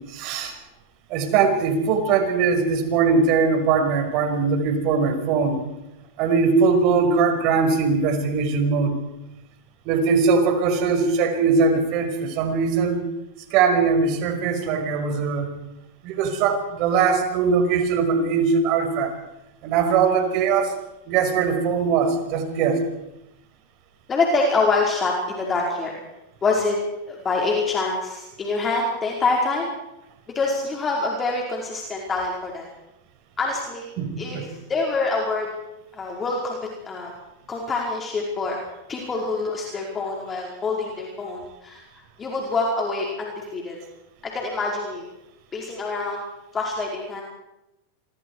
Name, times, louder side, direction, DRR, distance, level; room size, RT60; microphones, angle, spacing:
voice 1, 0.1-0.5 1.1-5.6 6.2-8.9 9.9-13.0 13.5-15.5 16.0-19.1 19.6-20.7 21.1-22.8 34.0-34.4, right 5 dB, 50° right, 5 dB, 5.4 m, -21 dB
voice 2, 24.1-26.0 26.4-26.8 27.1-29.7 30.3-32.6 33.4-33.9 34.2-35.5 35.9-37.1 37.5-38.6 38.9-41.8 42.2-43.8 44.2-45.0 45.5-46.2 46.5-47.2, left 3 dB, 25° left, -1 dB, 4.8 m, -25 dB
26.5 x 23.5 x 4.8 m, 0.91 s
hypercardioid pair, 105°, 0 cm